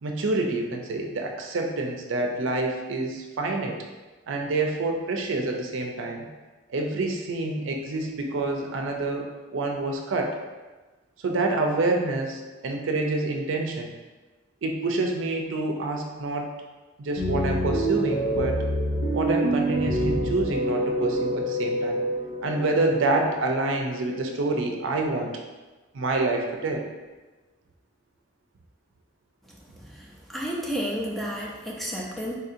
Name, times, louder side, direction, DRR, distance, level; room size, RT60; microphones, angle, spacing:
voice 1, 0.0-3.8 4.3-6.3 6.7-10.4 11.2-13.9 14.6-16.5 17.0-18.6 19.1-22.0 22.4-25.3 25.9-26.9, right 2 dB, 75° right, 2 dB, 0.5 m, -27 dB
sound 1, 17.2-24.6, right 1 dB, 60° left, 0.6 m, -27 dB
voice 2, 29.7-32.3, equal, ahead, -4 dB, 0.4 m, -32 dB
4.0 x 2.7 x 2.5 m, 1.2 s
head